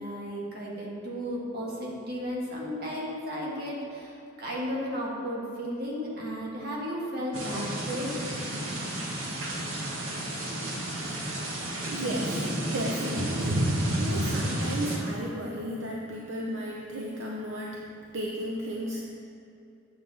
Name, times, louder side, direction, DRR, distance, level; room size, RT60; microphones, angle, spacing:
voice 1, 0.0-8.1, equal, 50° right, -3 dB, 1.6 m, -34 dB
sound 1, 7.3-15.0, right 1 dB, 85° right, 1.3 m, -31 dB
voice 2, 11.9-17.9 18.1-19.0, equal, 70° right, -2 dB, 0.7 m, -34 dB
8.1 x 7.1 x 3.9 m, 2.7 s
head